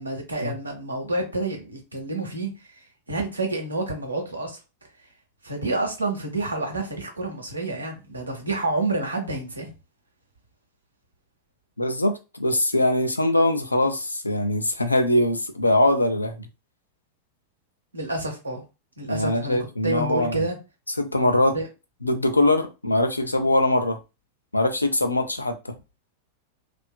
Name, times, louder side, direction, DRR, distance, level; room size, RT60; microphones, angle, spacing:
voice 1, 0.0-4.6 5.4-9.7 17.9-18.6 19.0-19.6 19.8-20.6 21.5-21.7, right 2 dB, 80° right, 0.8 m, -29 dB
voice 2, 11.8-16.5 19.1-20.4 21.0-21.6 22.0-24.0 24.5-25.6, left 1 dB, 85° left, 0.4 m, -22 dB
2.8 x 2.3 x 2.2 m
figure-of-eight pair, 90°, 0 cm